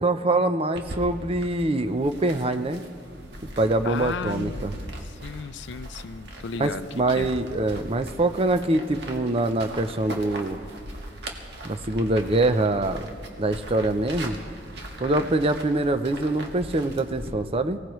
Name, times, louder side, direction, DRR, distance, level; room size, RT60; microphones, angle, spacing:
voice 1, 0.0-2.8 3.6-4.7 6.6-10.6 11.6-13.1 13.4-14.4 15.0-17.8, right 2 dB, 30° right, 10 dB, 0.6 m, -24 dB
sound 1, 0.8-17.3, right 1 dB, 65° right, 1.6 m, -39 dB
voice 2, 3.8-7.3 15.0-15.3, left 5 dB, 70° left, 14 dB, 0.4 m, -35 dB
24.0 x 17.5 x 3.1 m, 2.3 s
head